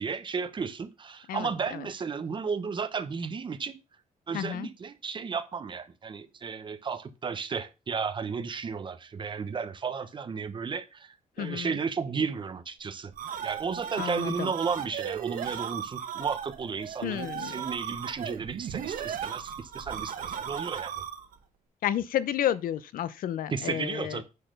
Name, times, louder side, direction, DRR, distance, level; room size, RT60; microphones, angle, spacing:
voice 1, 0.0-3.8 4.3-13.1 13.4-21.0 23.5-24.2, right 5 dB, 35° right, 1.0 m, -33 dB
voice 2, 1.3-1.9 4.3-4.7 11.4-11.8 14.0-14.5 17.0-17.5 21.8-24.2, left 11 dB, 90° left, 0.7 m, -31 dB
sound 1, 12.9-21.4, right 8 dB, 80° right, 1.4 m, -36 dB
9.7 x 4.1 x 6.7 m
wide cardioid pair, 150°, 14 cm